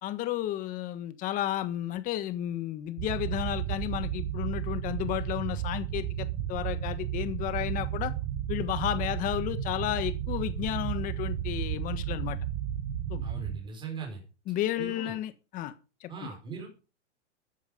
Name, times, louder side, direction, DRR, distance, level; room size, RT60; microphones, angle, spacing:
voice 1, 0.0-8.1 8.5-12.4 13.1-13.2 14.5-15.7 16.0-16.3, left 13 dB, 25° left, 12 dB, 1.4 m, -32 dB
sound 1, 3.0-13.6, right 10 dB, 45° right, 3.9 m, -33 dB
voice 2, 13.2-14.2 14.8-15.1 16.1-16.7, right 5 dB, 15° right, 1 dB, 5.1 m, -40 dB
14.0 x 10.5 x 5.3 m, 0.33 s
hypercardioid pair, 155°, 35 cm